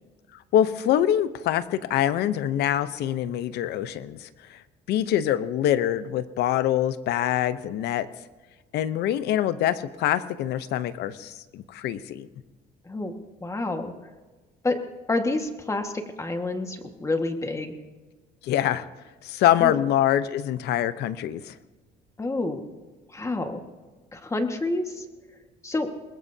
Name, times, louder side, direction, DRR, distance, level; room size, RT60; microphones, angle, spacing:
voice 1, 0.5-4.6 4.9-8.1 8.7-12.3 18.4-18.9 19.2-21.5, left 11 dB, 80° left, 14 dB, 0.8 m, -25 dB
voice 2, 13.4-13.9 14.6-14.8 15.1-17.7 19.6-19.8 22.2-22.6 23.1-23.6 24.1-25.0 25.6-25.9, left 2 dB, 15° left, 5 dB, 1.7 m, -28 dB
24.0 x 20.5 x 2.8 m, 1.3 s
cardioid pair, 110°, 17 cm